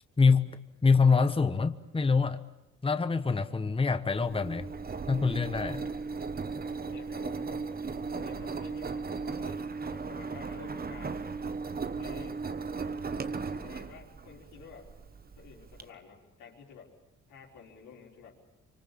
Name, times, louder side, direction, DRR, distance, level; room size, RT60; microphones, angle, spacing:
voice 1, 0.2-0.5 0.8-2.5 2.8-4.7 5.1-5.9, left 4 dB, 20° left, 10 dB, 1.2 m, -25 dB
Engine, 4.1-15.8, right 4 dB, 30° right, 1.2 m, -37 dB
voice 2, 6.8-7.6 8.1-11.4 12.0-12.4 13.5-14.9 15.4-16.9 17.3-18.4, left 6 dB, 90° left, -2 dB, 5.4 m, -51 dB
25.0 x 24.5 x 8.6 m, 0.91 s
cardioid pair, 90°, 30 cm